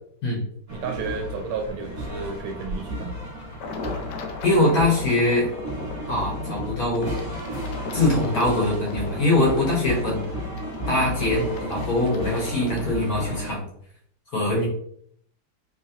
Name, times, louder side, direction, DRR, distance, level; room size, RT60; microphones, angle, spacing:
sound 1, 0.7-13.5, right 1 dB, 30° right, 1.7 m, -33 dB
voice 1, 0.7-3.2, right 5 dB, 80° right, 4 dB, 1.4 m, -32 dB
sound 2, 3.6-13.4, left 5 dB, 80° left, 1.0 m, -38 dB
voice 2, 4.4-5.5 6.1-7.1 7.9-10.3 10.9-13.7 14.3-14.7, left 2 dB, 50° left, -3 dB, 1.4 m, -22 dB
4.0 x 2.9 x 2.8 m, 0.66 s
omnidirectional pair, 2.4 m